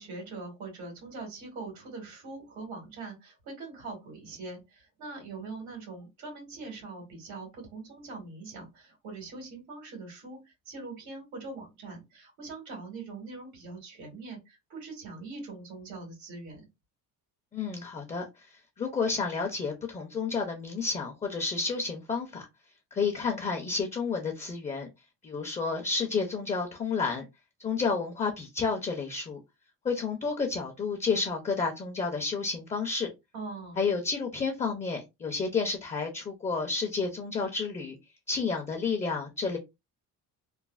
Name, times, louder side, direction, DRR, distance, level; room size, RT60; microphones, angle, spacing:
voice 1, 0.0-16.6 33.3-33.8, right 3 dB, 85° right, 1.7 m, -42 dB
voice 2, 17.5-18.2 18.8-22.5 22.9-24.9 25.2-27.2 27.6-29.4 29.8-33.1 33.8-38.0 38.3-39.6, left 4 dB, 20° left, 0.5 m, -30 dB
3.1 x 2.0 x 2.3 m
cardioid pair, 125°, 35 cm